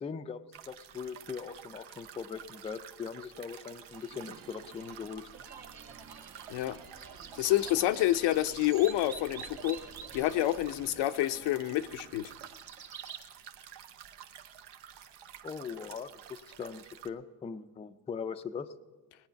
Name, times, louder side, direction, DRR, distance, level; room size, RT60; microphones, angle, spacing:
voice 1, 0.0-5.3 15.4-18.7, left 6 dB, 15° left, 8 dB, 0.4 m, -40 dB
sound 1, 0.5-17.1, right 9 dB, 70° right, 0.9 m, -51 dB
sound 2, 3.6-13.2, right 6 dB, 55° right, 1.7 m, -49 dB
voice 2, 7.4-9.8 10.1-12.3, left 14 dB, 70° left, 11 dB, 0.7 m, -28 dB
18.5 x 9.9 x 5.7 m, 1.3 s
cardioid pair, 110°, 42 cm